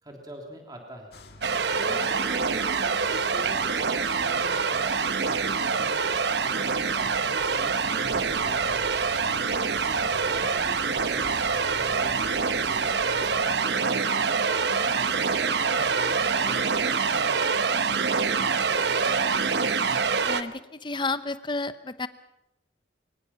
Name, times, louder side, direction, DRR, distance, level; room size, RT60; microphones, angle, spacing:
voice 1, 0.0-1.1 1.8-6.0 6.4-8.8 9.7-19.2 19.8-20.0, equal, 20° right, 1 dB, 3.4 m, -43 dB
sound 1, 1.1-13.7, left 1 dB, 60° left, 1.9 m, -49 dB
sound 2, 1.4-20.4, right 5 dB, 75° right, 0.9 m, -25 dB
sound 3, 8.0-13.4, equal, 55° right, 2.3 m, -48 dB
voice 2, 20.2-22.1, left 3 dB, 25° left, 13 dB, 0.9 m, -31 dB
23.0 x 20.0 x 6.0 m, 0.86 s
head